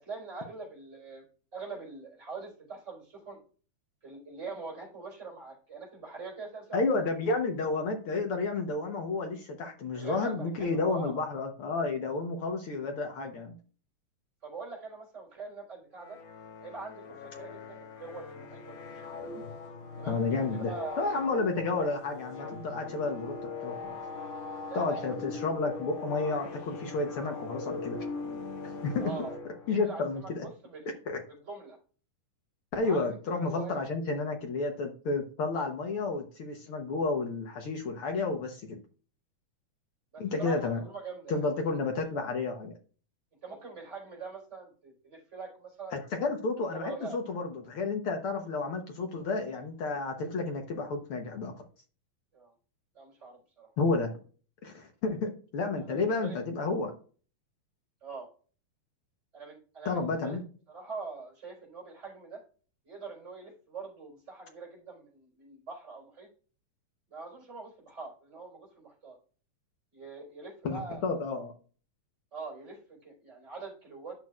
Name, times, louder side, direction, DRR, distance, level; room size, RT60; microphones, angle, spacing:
voice 1, 0.0-1.2 1.5-3.4 4.0-7.1 9.9-11.2 14.4-16.2 16.6-19.1 20.0-21.1 24.7-25.2 29.0-29.3 29.7-31.0 31.3-31.8 32.8-33.8 40.1-41.4 43.4-46.0 46.7-47.2 52.3-52.5 52.9-53.7 55.8-56.4 58.0-58.3 59.3-60.4 60.7-62.4 62.8-66.3 67.1-69.2 69.9-71.1 72.3-74.2, right 4 dB, 20° right, -1 dB, 4.1 m, -43 dB
voice 2, 6.7-13.5 20.1-23.3 23.6-24.0 24.7-28.1 28.8-29.1 29.7-30.5 31.1-31.2 32.7-38.8 40.2-40.8 41.3-42.7 45.9-51.5 53.8-54.1 54.6-56.9 59.8-60.4 70.6-71.5, left 3 dB, 70° left, 3 dB, 1.3 m, -31 dB
sound 1, 16.0-30.1, left 3 dB, 50° left, 2.4 m, -41 dB
11.0 x 6.2 x 2.4 m, 0.39 s
omnidirectional pair, 3.8 m